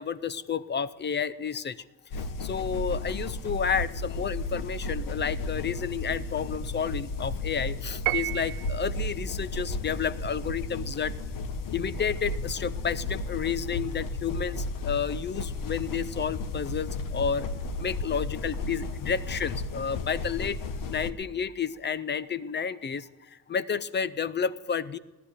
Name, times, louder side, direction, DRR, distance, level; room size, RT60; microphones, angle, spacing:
voice 1, 0.0-1.8 2.4-11.1 11.7-17.5 17.8-20.6 20.9-23.0 23.5-25.0, left 7 dB, 30° left, 16 dB, 0.5 m, -31 dB
sound 1, 2.1-21.1, left 2 dB, 55° left, 1.1 m, -34 dB
Piano, 8.1-9.0, right 17 dB, 70° right, 0.5 m, -30 dB
17.5 x 11.5 x 6.8 m, 1.1 s
cardioid pair, 155°, 40 cm